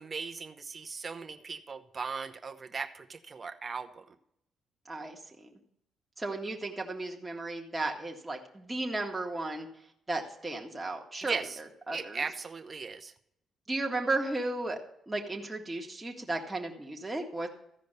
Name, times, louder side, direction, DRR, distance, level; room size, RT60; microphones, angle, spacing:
voice 1, 0.0-4.0 11.2-11.6 11.9-13.1, right 5 dB, 35° right, 6 dB, 1.0 m, -38 dB
voice 2, 4.9-5.5 6.2-9.7 10.1-11.4 11.9-12.2 13.7-14.8 15.1-17.5, right 2 dB, 15° right, 0 dB, 1.9 m, -34 dB
14.5 x 5.1 x 6.8 m, 0.75 s
cardioid pair, 90°, 0 cm